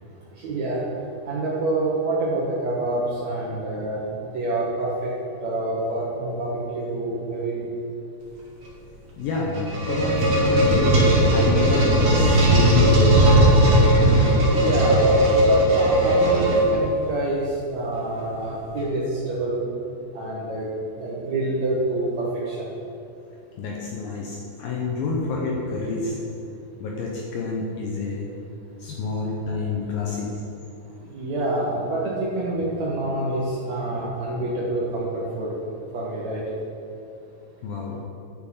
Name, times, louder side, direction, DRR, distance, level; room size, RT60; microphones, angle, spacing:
voice 1, 0.4-0.8 1.2-4.0 4.3-5.1 5.4-7.6 10.4-10.5 14.5-17.4 17.7-19.6 20.1-20.7 21.0-22.6 31.1-35.5 35.9-36.4, right 2 dB, 75° right, -6 dB, 1.6 m, -27 dB
voice 2, 9.2-13.3 23.6-26.2 26.8-28.3 28.8-30.3 37.6-38.0, left 4 dB, 75° left, -2 dB, 2.2 m, -28 dB
sound 1, 9.3-17.1, right 1 dB, 45° right, 2.1 m, -17 dB
9.5 x 7.1 x 5.6 m, 2.7 s
omnidirectional pair, 5.2 m